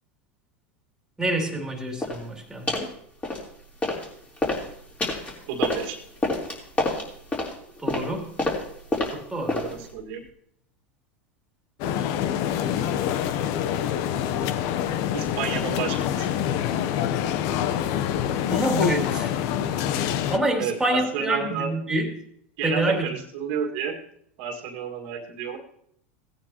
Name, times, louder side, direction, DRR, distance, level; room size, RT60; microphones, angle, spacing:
voice 1, 1.2-2.9 7.8-8.4 9.1-9.6 18.5-19.4 20.3-22.1 22.6-23.1, right 1 dB, 5° right, 1 dB, 2.7 m, -27 dB
sound 1, 2.0-2.2 2.7-2.9 3.2-4.1 4.3-9.9, left 2 dB, 20° left, 3.6 m, -28 dB
voice 2, 5.5-6.0 9.4-10.2 15.1-16.3 20.6-21.7 22.6-24.0 24.4-25.6, right 7 dB, 65° right, 2 dB, 1.9 m, -31 dB
sound 2, 11.8-20.4, left 9 dB, 60° left, 0.7 m, -26 dB
17.0 x 9.5 x 2.9 m, 0.69 s
supercardioid pair, 110°, 7 cm